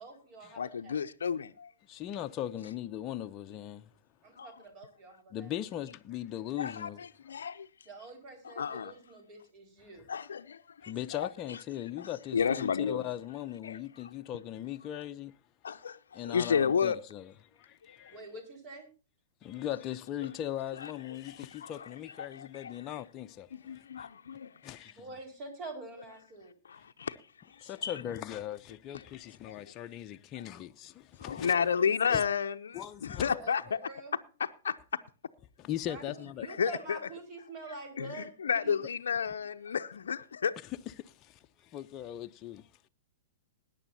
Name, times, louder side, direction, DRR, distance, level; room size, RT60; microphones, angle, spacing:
voice 1, 0.0-1.0 4.2-5.5 7.8-10.1 18.1-18.9 25.0-26.5 33.4-34.2 35.9-38.3 38.5-38.8, right 3 dB, 40° right, 5.0 m, -46 dB
voice 2, 0.6-1.7 4.4-4.6 6.6-7.7 8.4-8.9 10.1-10.9 12.0-13.0 13.6-13.8 15.6-17.0 21.6-21.7 22.3-22.7 23.5-24.5 26.6-27.1 27.8-27.9 31.2-33.8 34.4-35.0 36.5-37.1 37.6-40.5, left 7 dB, 80° left, 0.6 m, -32 dB
voice 3, 1.9-3.9 5.3-7.0 9.9-10.1 10.8-15.3 16.1-18.2 19.4-24.1 24.6-25.1 27.6-31.7 32.1-32.2 32.7-33.4 35.6-36.5 40.6-42.6, left 12 dB, 35° left, 0.6 m, -39 dB
20.5 x 9.9 x 2.7 m
hypercardioid pair, 110°, 0 cm